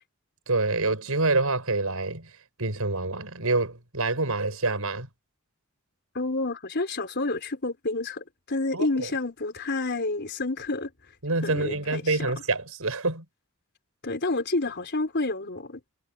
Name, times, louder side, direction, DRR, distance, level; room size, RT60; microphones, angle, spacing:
voice 1, 0.5-2.3 2.6-5.1 8.7-9.1 11.2-13.3, right 3 dB, 90° right, 5.3 m, -26 dB
voice 2, 6.1-10.9 11.4-12.2 14.0-15.8, left 2 dB, 55° left, 4.2 m, -29 dB
head